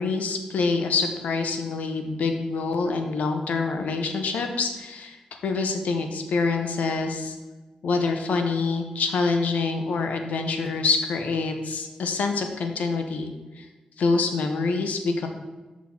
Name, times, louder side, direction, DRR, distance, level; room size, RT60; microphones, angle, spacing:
voice 1, 0.0-7.4 7.8-13.3 13.6-13.7 14.0-15.3, left 4 dB, 85° left, 5 dB, 0.8 m, -26 dB
6.1 x 3.6 x 6.0 m, 1.2 s
wide cardioid pair, 155°, 2 cm